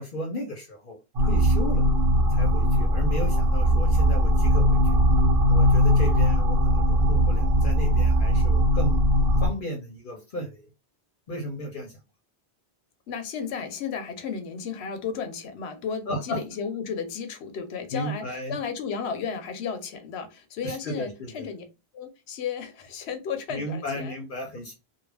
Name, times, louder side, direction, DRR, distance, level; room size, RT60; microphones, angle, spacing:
voice 1, 0.0-1.8 2.3-5.0 5.5-9.0 9.4-10.7 11.3-12.0 16.1-16.4 17.9-18.6 20.6-21.5 23.5-24.7, equal, 60° left, 0.7 m, -34 dB
sound 1, 1.1-9.5, equal, 60° right, 0.9 m, -20 dB
voice 2, 13.1-21.6 21.9-24.1, left 6 dB, 85° left, 0.9 m, -34 dB
2.3 x 2.1 x 3.2 m
omnidirectional pair, 1.1 m